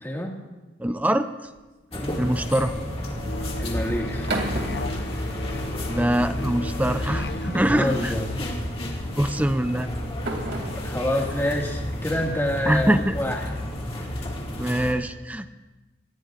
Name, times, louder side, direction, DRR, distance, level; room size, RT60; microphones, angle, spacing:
voice 1, 0.0-0.4 1.9-2.2 3.6-4.3 7.4-8.4 10.8-13.5, left 1 dB, 15° left, 0 dB, 1.9 m, -27 dB
voice 2, 0.8-1.3 2.2-2.7 5.9-8.1 9.2-9.9 12.7-13.2 14.5-15.5, right 1 dB, 10° right, 9 dB, 0.5 m, -23 dB
sound 1, 1.4-1.9 3.9-5.8 6.2-6.8 7.9-8.2 9.3-12.6, right 2 dB, 60° right, 2.7 m, -35 dB
sound 2, 1.9-14.9, left 1 dB, 30° left, 2.0 m, -32 dB
Musical instrument, 3.3-7.8, left 2 dB, 60° left, 0.7 m, -33 dB
27.0 x 19.5 x 2.5 m, 1.1 s
head